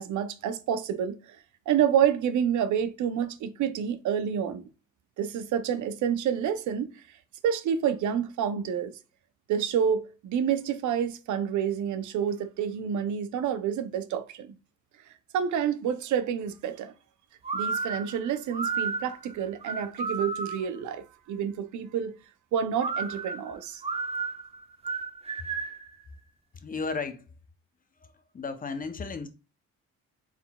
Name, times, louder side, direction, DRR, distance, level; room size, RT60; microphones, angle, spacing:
voice 1, 0.0-4.7 5.2-7.0 7.4-8.9 9.5-14.6 15.3-16.9 17.5-22.2 22.5-23.8, right 8 dB, 75° right, 0.6 m, -28 dB
sound 1, 17.4-20.8 22.8-25.9, right 4 dB, 20° right, 0.6 m, -32 dB
voice 2, 26.5-27.2 28.0-29.3, left 4 dB, 30° left, 0.6 m, -34 dB
4.4 x 3.8 x 2.2 m
cardioid pair, 90°, 30 cm